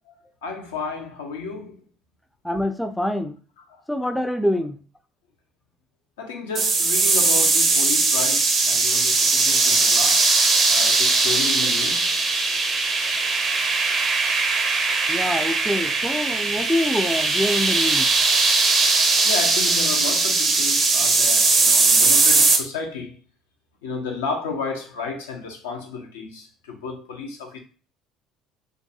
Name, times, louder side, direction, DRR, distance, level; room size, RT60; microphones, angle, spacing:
voice 1, 0.1-1.8 3.7-3.8 6.2-10.2 10.7-12.2 19.0-23.2 23.8-27.6, left 4 dB, 85° left, 0.5 m, -32 dB
voice 2, 2.4-3.4 3.9-4.8 15.1-18.1, left 1 dB, 5° left, 0.3 m, -25 dB
sound 1, 6.6-22.6, right 3 dB, 45° right, 0.5 m, -19 dB
2.3 x 2.2 x 2.7 m
hypercardioid pair, 60°, 0 cm